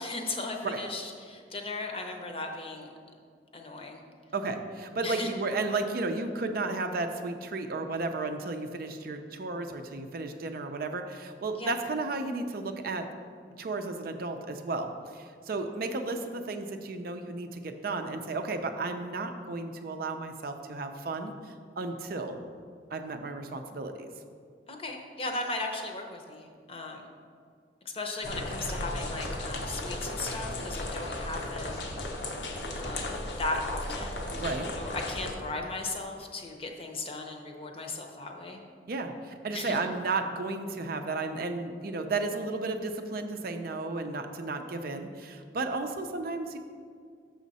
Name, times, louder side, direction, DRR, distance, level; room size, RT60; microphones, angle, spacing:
voice 1, 0.0-2.9 3.5-4.0 5.0-5.3 11.5-11.8 24.7-27.1 27.8-31.8 32.8-34.4 34.8-38.6 39.5-39.8, left 2 dB, 30° left, 2 dB, 0.7 m, -37 dB
voice 2, 4.3-13.1 13.6-22.4 22.9-24.1 34.4-34.7 38.9-46.6, right 3 dB, 55° right, 6 dB, 0.5 m, -33 dB
sound 1, 28.2-35.4, left 1 dB, 80° left, 0.9 m, -35 dB
6.3 x 6.2 x 4.1 m, 2.1 s
head